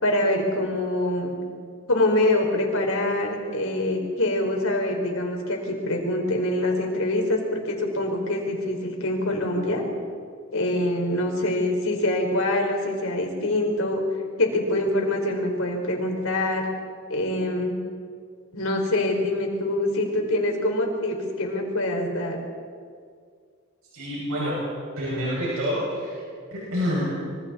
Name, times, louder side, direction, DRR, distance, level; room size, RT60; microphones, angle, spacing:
voice 1, 0.0-1.3 1.9-9.8 10.5-14.0 14.4-16.7 17.1-17.7 18.5-22.4, left 1 dB, 85° left, 1 dB, 4.3 m, -25 dB
voice 2, 23.9-24.6 25.0-26.2 26.5-27.1, equal, 85° right, -7 dB, 6.6 m, -27 dB
26.0 x 24.5 x 4.2 m, 2.1 s
head